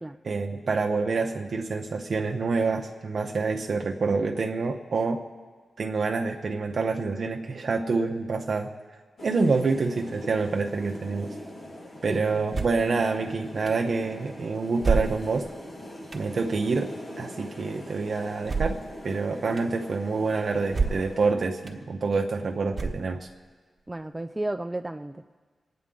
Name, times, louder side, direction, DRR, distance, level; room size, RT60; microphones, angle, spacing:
voice 1, 0.2-5.2 5.8-8.7 9.2-11.3 12.0-15.5 16.1-16.9 17.2-18.8 19.0-23.3, right 4 dB, 60° right, 2 dB, 0.7 m, -27 dB
sound 1, 9.2-21.3, left 1 dB, 60° left, 1.7 m, -42 dB
voice 2, 12.1-12.4 23.9-25.4, right 1 dB, 15° right, 7 dB, 0.4 m, -33 dB
sound 2, 12.5-12.9 13.7-13.8 14.8-15.5 16.1-16.3 18.4-18.9 19.6-19.7 20.7-21.2 21.7-21.8 22.7-23.3, right 4 dB, 40° right, 1.2 m, -28 dB
27.0 x 9.4 x 3.8 m, 1.5 s
wide cardioid pair, 100°, 0 cm